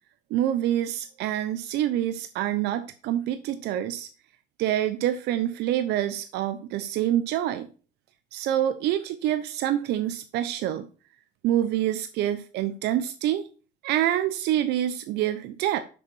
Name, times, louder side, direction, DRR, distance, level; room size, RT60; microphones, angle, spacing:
voice 1, 0.3-4.1 4.6-7.7 8.3-10.9 11.4-13.4 13.8-15.8, right 12 dB, 80° right, 10 dB, 0.7 m, -26 dB
6.6 x 5.3 x 7.0 m, 0.37 s
cardioid pair, 110°, 17 cm